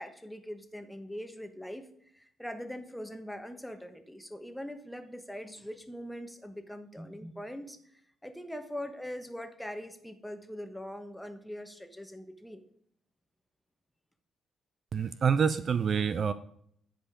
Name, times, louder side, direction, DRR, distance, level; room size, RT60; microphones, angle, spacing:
voice 1, 0.0-1.9 2.1-12.6, equal, 5° left, 7 dB, 1.1 m, -42 dB
voice 2, 14.9-16.3, right 6 dB, 50° right, 14 dB, 0.4 m, -27 dB
10.0 x 5.1 x 4.9 m, 0.67 s
cardioid pair, 90°, 0 cm